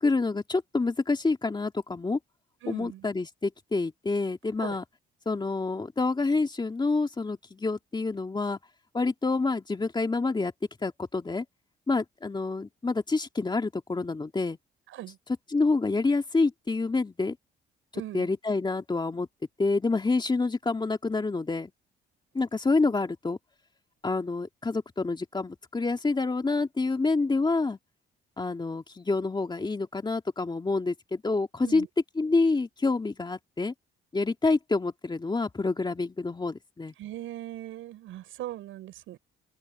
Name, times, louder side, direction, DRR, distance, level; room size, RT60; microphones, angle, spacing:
voice 1, 0.0-2.2 2.7-4.8 5.3-8.6 8.9-10.5 10.8-11.4 11.9-14.6 15.5-17.4 18.1-19.3 19.6-21.7 22.3-23.4 24.0-27.8 28.4-31.9 32.1-33.7 34.1-36.9, left 3 dB, 20° left, 2.5 m, -27 dB
voice 2, 2.6-3.1 4.6-4.8 14.9-15.2 17.9-18.3 31.6-31.9 37.0-39.2, right 14 dB, 85° right, 7.3 m, -39 dB
cardioid pair, 90°, 20 cm